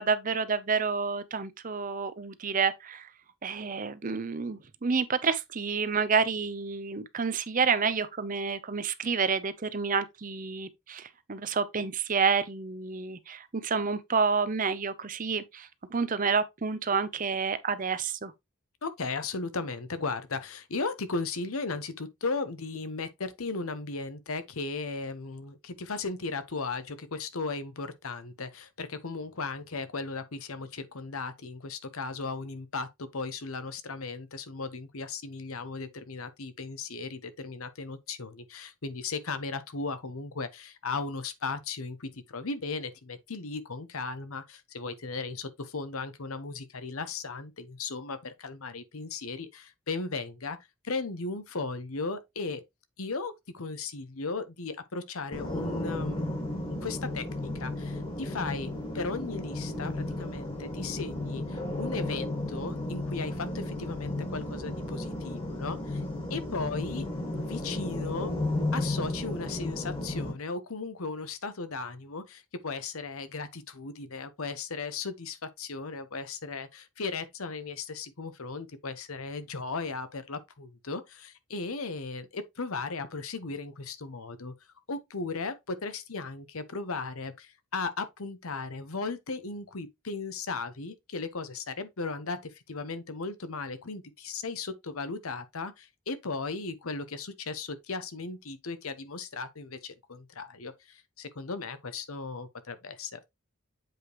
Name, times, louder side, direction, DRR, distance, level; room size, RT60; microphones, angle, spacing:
voice 1, 0.0-3.1 3.4-18.3, right 5 dB, 40° right, 0.6 m, -29 dB
voice 2, 18.8-50.6 50.8-52.6 53.0-56.3 56.7-66.0 66.3-67.1 67.4-68.3 68.7-84.5 84.9-103.3, left 4 dB, 80° left, 1.0 m, -36 dB
sound 1, 55.3-70.3, left 1 dB, 25° left, 1.7 m, -34 dB
7.8 x 4.9 x 3.0 m
head